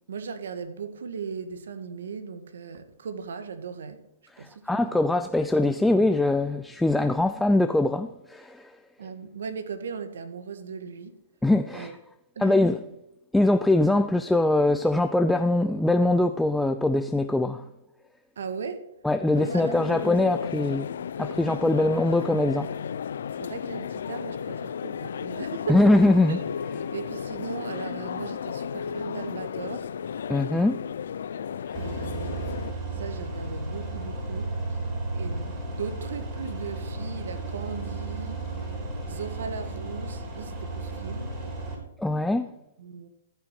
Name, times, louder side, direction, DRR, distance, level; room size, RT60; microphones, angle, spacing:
voice 1, 0.0-4.0 4.4-5.1 9.0-11.2 11.7-11.9 12.3-12.6 18.4-18.8 19.4-20.1 23.4-25.8 26.3-26.4 26.9-29.9 31.7-32.5 32.9-34.8 35.1-38.4 39.1-41.4 42.8-43.1, right 6 dB, 75° right, 1.4 m, -37 dB
voice 2, 4.4-8.7 11.4-12.0 12.4-12.8 13.3-17.6 19.0-20.9 21.2-22.7 25.7-26.4 30.3-30.8 42.0-42.5, left 2 dB, 5° left, 0.4 m, -22 dB
sound 1, 19.3-32.7, left 7 dB, 70° left, 0.5 m, -34 dB
sound 2, 31.7-41.8, right 2 dB, 25° right, 4.0 m, -34 dB
13.5 x 5.9 x 5.9 m
hypercardioid pair, 145°, 0 cm